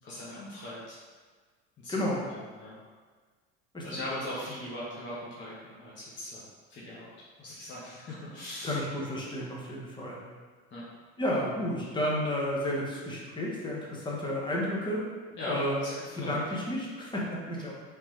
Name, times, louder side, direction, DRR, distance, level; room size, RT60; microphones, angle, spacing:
voice 1, 0.0-1.0 1.8-1.9 2.3-2.8 3.8-8.8 10.7-10.9 15.4-16.4, left 1 dB, 35° left, -7 dB, 1.0 m, -40 dB
voice 2, 1.9-2.2 3.7-3.8 8.6-10.2 11.2-15.0 15.5-15.8 16.2-17.7, left 1 dB, 15° left, -4 dB, 1.1 m, -31 dB
3.3 x 3.0 x 3.2 m, 1.5 s
hypercardioid pair, 80°, 32 cm